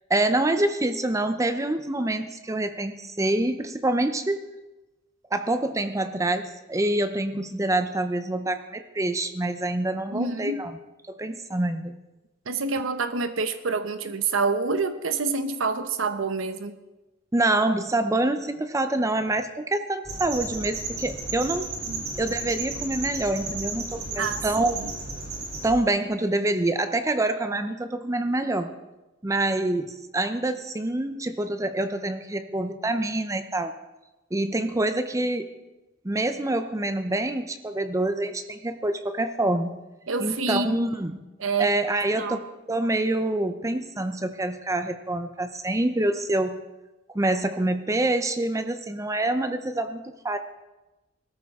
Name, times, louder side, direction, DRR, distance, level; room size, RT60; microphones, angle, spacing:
voice 1, 0.1-4.4 5.3-10.7 11.1-11.9 17.3-21.7 22.2-24.8 25.6-28.7 29.2-33.7 34.3-35.5 36.0-39.8 40.2-41.2 41.6-46.6 47.1-50.4, right 2 dB, 15° right, 9 dB, 0.6 m, -26 dB
voice 2, 10.1-10.6 12.5-16.7 21.9-22.0 24.2-24.4 24.7-24.9 40.1-40.9 41.4-41.7 42.2-42.4, right 4 dB, 85° right, 10 dB, 0.8 m, -27 dB
sound 1, 20.0-25.7, right 3 dB, 55° right, 3.8 m, -33 dB
20.0 x 13.5 x 3.6 m, 1.1 s
head